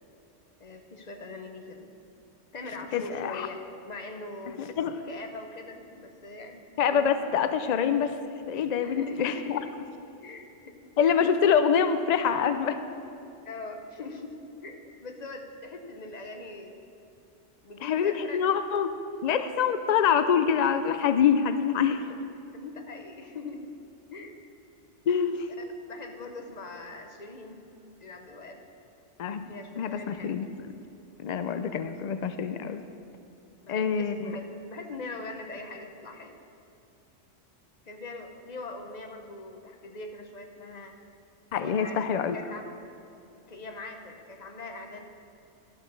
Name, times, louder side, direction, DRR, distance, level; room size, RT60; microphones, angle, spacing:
voice 1, 0.6-1.9 2.5-3.6 3.8-6.6 8.8-9.7 10.2-10.7 11.0-11.5 13.4-14.3 14.6-16.8 17.6-18.4 21.8-21.9 22.5-23.7 24.1-24.3 25.8-27.6 28.0-28.6 29.5-30.4 31.2-31.4 33.6-36.4 37.8-40.9 41.5-42.0 42.3-42.8 43.5-45.0, left 3 dB, 40° left, 4 dB, 0.9 m, -41 dB
voice 2, 2.9-3.5 4.6-4.9 6.8-8.2 8.5-9.6 11.0-12.8 17.8-18.9 19.2-22.0 25.1-25.5 29.2-29.5 29.8-30.5 31.2-32.8 33.7-34.4 41.5-42.4, left 7 dB, 85° left, 9 dB, 0.3 m, -25 dB
12.0 x 6.1 x 6.3 m, 2.7 s
omnidirectional pair, 1.3 m